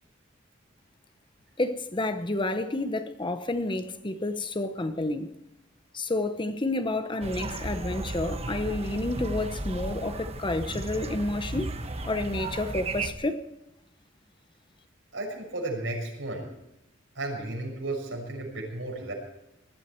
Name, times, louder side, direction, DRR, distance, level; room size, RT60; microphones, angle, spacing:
voice 1, 1.6-5.3 5.9-13.4, left 2 dB, 25° left, 0.9 m, -30 dB
sound 1, 7.2-13.1, right 2 dB, 30° right, 1.1 m, -34 dB
voice 2, 15.1-16.5 17.1-19.1, right 2 dB, 75° right, 6.3 m, -33 dB
20.0 x 13.0 x 4.5 m
head